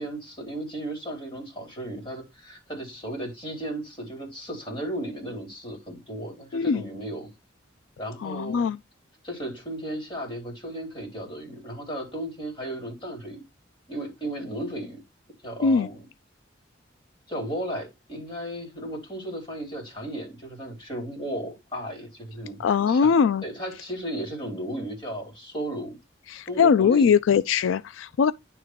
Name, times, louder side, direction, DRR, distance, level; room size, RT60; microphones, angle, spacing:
voice 1, 0.0-7.3 8.0-8.7 9.2-13.4 13.9-15.0 15.4-16.0 17.3-22.6 22.9-26.0 26.5-27.2, right 1 dB, 25° left, 3.7 m, -35 dB
voice 2, 6.5-6.8 8.2-8.8 15.6-15.9 22.6-23.4 26.3-28.3, left 6 dB, 90° left, 0.3 m, -21 dB
9.9 x 3.7 x 4.6 m
head